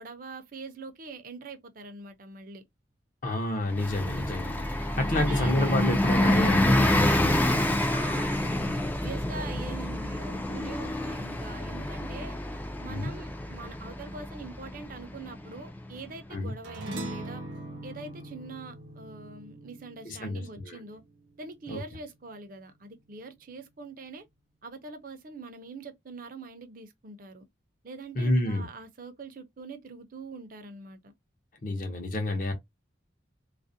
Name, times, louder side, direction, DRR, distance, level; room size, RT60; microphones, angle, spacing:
voice 1, 0.0-2.6 5.0-5.8 7.9-12.4 12.8-17.4 17.8-21.0 21.4-24.2 24.6-27.4 27.8-31.1, right 3 dB, 45° right, 0.5 m, -43 dB
voice 2, 3.2-7.5 12.9-13.1 16.3-16.5 20.0-20.8 21.7-21.8 28.2-28.6 31.6-32.5, left 1 dB, 45° left, 0.7 m, -29 dB
Bus, 3.7-16.0, left 1 dB, 10° left, 0.3 m, -28 dB
sound 1, 16.6-21.3, right 1 dB, 80° right, 0.7 m, -41 dB
2.4 x 2.0 x 2.6 m
head